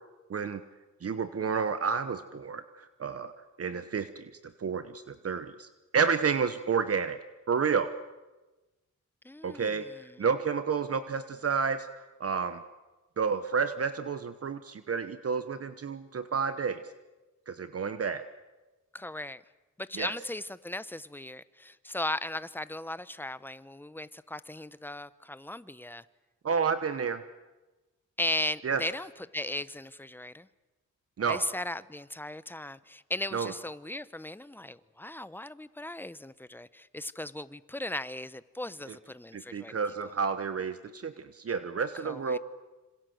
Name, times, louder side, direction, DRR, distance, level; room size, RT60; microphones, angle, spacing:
voice 1, 0.3-0.6 1.0-3.3 3.6-7.2 7.5-7.9 9.4-12.6 13.2-16.8 17.5-18.3 19.9-20.1 26.4-27.2 28.6-28.8 31.2-31.4 33.3-33.5 38.9-39.0 39.3-42.4, right 6 dB, 50° right, 11 dB, 1.1 m, -30 dB
voice 2, 9.2-9.8 18.9-19.4 19.8-26.0 28.2-30.5 31.3-39.7 42.0-42.4, left 1 dB, 5° left, 15 dB, 0.9 m, -37 dB
26.5 x 26.5 x 7.9 m, 1.1 s
wide cardioid pair, 105°, 31 cm